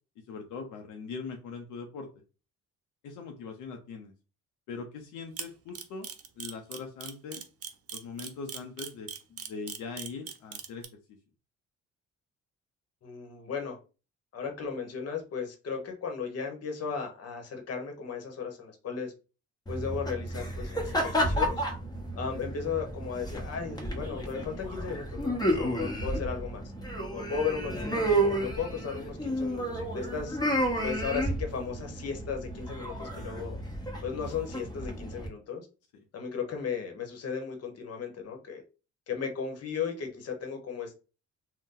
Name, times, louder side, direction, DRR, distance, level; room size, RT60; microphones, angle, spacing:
voice 1, 0.3-2.1 3.0-4.1 4.7-6.1 6.4-7.4 7.9-11.2 35.9-36.0, left 4 dB, 90° left, 3 dB, 0.6 m, -41 dB
Camera, 5.4-10.8, right 8 dB, 50° right, 0.6 m, -39 dB
voice 2, 13.0-13.8 14.3-19.1 19.7-21.6 22.1-26.6 27.1-30.5 30.8-33.6 34.0-35.7 36.1-38.6 39.1-40.9, left 6 dB, 55° left, 3 dB, 1.0 m, -36 dB
sound 1, 19.7-35.3, right 1 dB, 15° left, 1.0 m, -32 dB
2.6 x 2.2 x 3.7 m, 0.33 s
cardioid pair, 90°, 30 cm